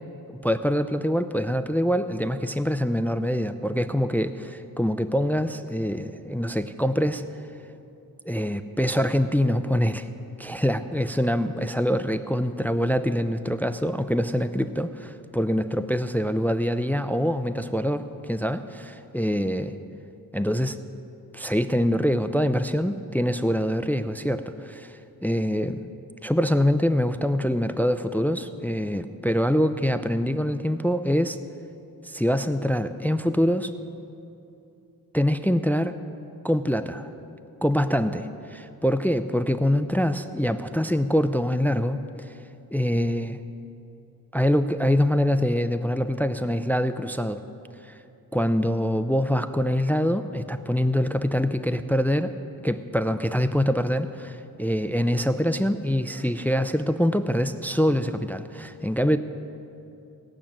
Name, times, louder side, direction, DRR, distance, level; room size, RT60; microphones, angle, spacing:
voice 1, 0.3-7.2 8.3-10.1 10.4-19.7 20.3-20.8 21.3-25.8 26.2-31.4 32.0-33.7 35.1-36.0 36.4-37.1 37.6-42.3 42.7-43.4 44.3-47.4 47.9-48.0 48.3-52.3 52.6-59.2, equal, 5° left, 11 dB, 0.4 m, -24 dB
18.0 x 6.1 x 8.7 m, 2.7 s
wide cardioid pair, 95°, 38 cm